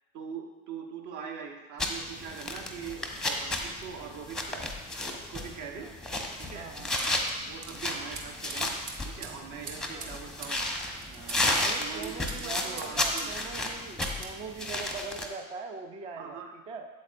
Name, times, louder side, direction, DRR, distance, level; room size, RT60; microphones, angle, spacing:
voice 1, 0.1-4.6 5.1-5.9 6.3-7.1 7.5-8.8 9.0-10.6 11.1-11.4 11.8-13.5 16.2-16.5, right 6 dB, 45° right, 3 dB, 1.1 m, -42 dB
sound 1, 1.8-15.3, left 1 dB, ahead, 0.8 m, -33 dB
sound 2, 6.1-9.0, left 2 dB, 90° right, 1.8 m, -56 dB
voice 2, 6.5-7.0 9.9-10.1 11.5-16.9, right 4 dB, 15° right, 5 dB, 0.3 m, -41 dB
sound 3, 7.0-13.4 13.6-14.4, right 4 dB, 65° right, 1.2 m, -44 dB
8.0 x 7.6 x 2.5 m, 1.2 s
hypercardioid pair, 85°, 43 cm